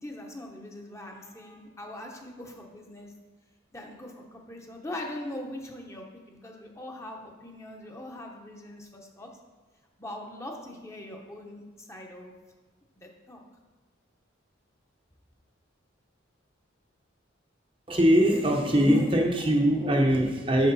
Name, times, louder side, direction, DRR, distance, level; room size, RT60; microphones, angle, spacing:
voice 1, 0.0-3.1 3.7-9.3 10.0-12.3 13.0-13.4, left 1 dB, 15° left, 1 dB, 0.8 m, -41 dB
voice 2, 17.9-20.7, equal, 25° right, 1 dB, 0.7 m, -22 dB
8.0 x 6.3 x 4.1 m, 1.3 s
head